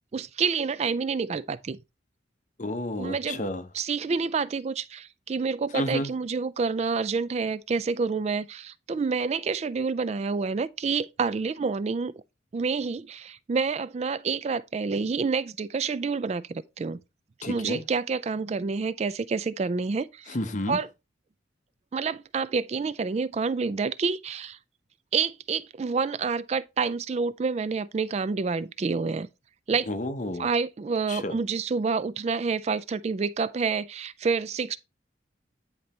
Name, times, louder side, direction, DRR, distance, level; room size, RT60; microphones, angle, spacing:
voice 1, 0.1-1.8 3.0-3.4 3.7-12.1 12.5-17.0 17.5-20.4 20.7-20.9 21.9-24.6 25.1-29.3 29.7-29.9 30.4-34.8, right 5 dB, 35° right, 0.3 m, -28 dB
voice 2, 2.6-3.6 5.7-6.1 17.4-17.8 20.3-20.8 29.9-30.5 31.1-31.4, left 1 dB, 40° left, 0.8 m, -31 dB
9.5 x 3.9 x 4.3 m
head